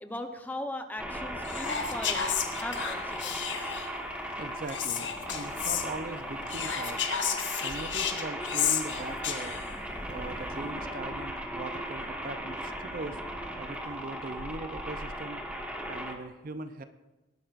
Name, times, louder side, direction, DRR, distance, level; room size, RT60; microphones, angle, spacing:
voice 1, 0.0-3.7, left 1 dB, 10° left, 6 dB, 0.8 m, -39 dB
sound 1, 1.0-16.1, equal, 5° right, 1.2 m, -37 dB
Whispering, 1.4-4.0 4.7-5.9 6.5-9.8, left 8 dB, 65° left, 1.2 m, -32 dB
voice 2, 4.4-7.0 7.6-9.6 10.1-13.2 13.6-15.4 15.9-16.8, right 2 dB, 45° right, 9 dB, 0.5 m, -40 dB
19.0 x 11.5 x 2.5 m, 1.1 s
head